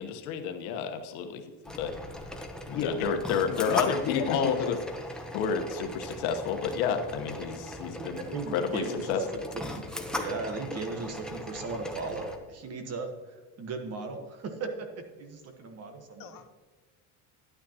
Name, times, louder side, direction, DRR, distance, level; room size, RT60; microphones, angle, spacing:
voice 1, 0.0-1.4 1.8-1.9 2.7-4.8 5.3-9.2, left 6 dB, 85° left, 6 dB, 1.2 m, -30 dB
sound 1, 1.6-12.4, left 1 dB, ahead, 0.7 m, -38 dB
voice 2, 2.7-3.0 3.5-4.8 16.2-16.5, left 8 dB, 50° left, 8 dB, 0.8 m, -34 dB
voice 3, 8.0-9.2 9.5-9.8 10.1-14.9 15.2-16.4, right 4 dB, 35° right, 6 dB, 1.2 m, -37 dB
11.0 x 9.2 x 2.9 m, 1.4 s
cardioid pair, 145°, 45 cm